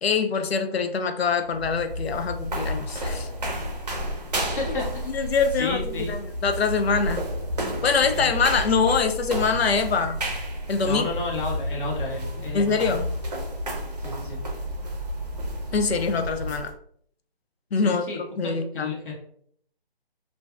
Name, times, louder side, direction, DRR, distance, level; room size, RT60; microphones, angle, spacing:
voice 1, 0.0-3.3 5.1-5.8 6.1-7.3 7.8-10.2 10.7-11.1 12.5-13.1 15.7-16.7 17.7-18.0 18.4-18.9, left 5 dB, 85° left, 7 dB, 0.6 m, -24 dB
sound 1, 1.4-16.7, equal, 45° right, 0.6 m, -31 dB
voice 2, 4.3-6.1 8.1-8.3 10.8-12.8 14.0-14.4 17.8-19.1, left 2 dB, 55° left, -4 dB, 1.4 m, -33 dB
3.1 x 2.6 x 2.3 m, 0.63 s
hypercardioid pair, 170°, 30 cm